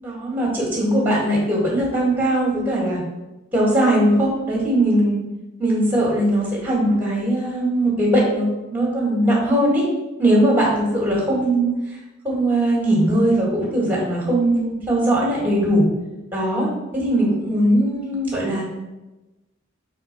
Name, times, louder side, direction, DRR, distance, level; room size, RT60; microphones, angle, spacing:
voice 1, 0.0-3.0 3.5-5.2 5.6-9.8 10.2-11.7 12.2-15.9 16.3-16.7 16.9-18.6, right 1 dB, 10° right, -3 dB, 1.9 m, -20 dB
4.4 x 4.4 x 5.3 m, 1.0 s
head